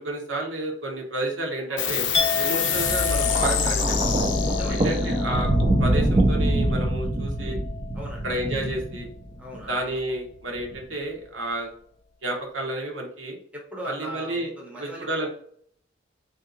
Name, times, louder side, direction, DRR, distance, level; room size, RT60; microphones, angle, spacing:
voice 1, 0.0-2.1 2.4-4.0 4.7-5.5 5.8-7.6 8.2-9.1 9.7-11.7 12.2-13.4 13.8-14.5 14.8-15.3, right 1 dB, 70° right, 0 dB, 0.9 m, -30 dB
voice 2, 1.7-2.0 4.5-5.1 7.9-8.3 9.4-10.0 13.5-15.3, equal, 5° right, -2 dB, 0.8 m, -38 dB
sound 1, 1.8-8.7, left 6 dB, 65° left, 0.5 m, -28 dB
Chink clink, 2.1-8.1 8.4-8.8, left 4 dB, 35° left, 0.8 m, -32 dB
Thunder, 3.2-9.6 10.6-10.8, right 1 dB, 25° right, 0.4 m, -24 dB
3.5 x 2.8 x 2.5 m, 0.62 s
head